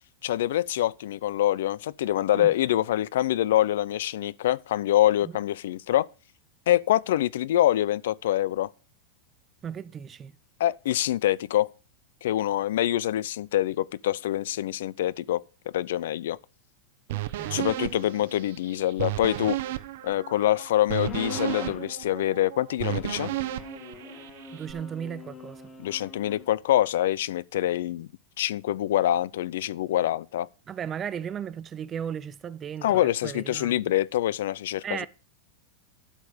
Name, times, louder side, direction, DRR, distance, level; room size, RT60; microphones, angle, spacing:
voice 1, 0.2-6.1 6.7-8.7 10.6-11.7 12.2-15.4 15.7-16.4 17.5-19.6 20.0-23.3 25.8-28.1 28.4-30.5 32.8-35.1, left 13 dB, 70° left, 0.5 m, -25 dB
voice 2, 9.6-10.3 17.1-18.0 24.5-25.6 30.7-33.9 34.8-35.1, right 8 dB, 15° right, 0.5 m, -36 dB
sound 1, 17.1-24.7, right 15 dB, 60° right, 0.8 m, -34 dB
sound 2, 21.0-21.9 22.8-26.5, left 3 dB, 15° left, 1.9 m, -42 dB
11.0 x 8.1 x 5.0 m
supercardioid pair, 170°, 0 cm